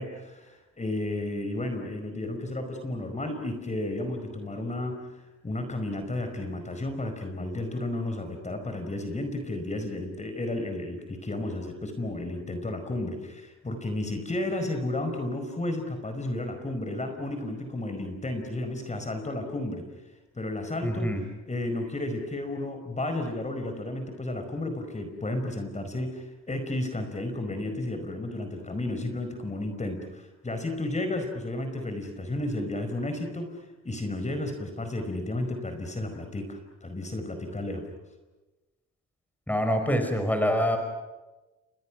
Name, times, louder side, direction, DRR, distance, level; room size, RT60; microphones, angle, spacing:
voice 1, 0.0-5.1 5.4-19.9 20.3-21.1 21.5-37.9, left 1 dB, 25° left, 6 dB, 5.0 m, -32 dB
voice 2, 20.8-21.2 39.5-40.8, equal, 5° left, 6 dB, 5.1 m, -25 dB
30.0 x 26.0 x 6.2 m, 1.1 s
cardioid pair, 90°, 30 cm